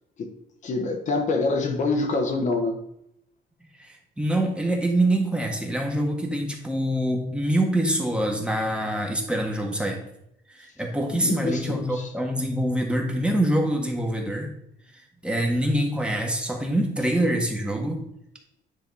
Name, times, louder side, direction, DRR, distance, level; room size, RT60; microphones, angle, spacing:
voice 1, 0.6-2.8 11.1-12.1, left 3 dB, 45° left, 4 dB, 1.1 m, -26 dB
voice 2, 3.8-10.0 10.5-14.5 15.2-18.0, right 1 dB, 5° right, 1 dB, 1.5 m, -25 dB
9.9 x 4.1 x 4.1 m, 0.75 s
cardioid pair, 110°, 17 cm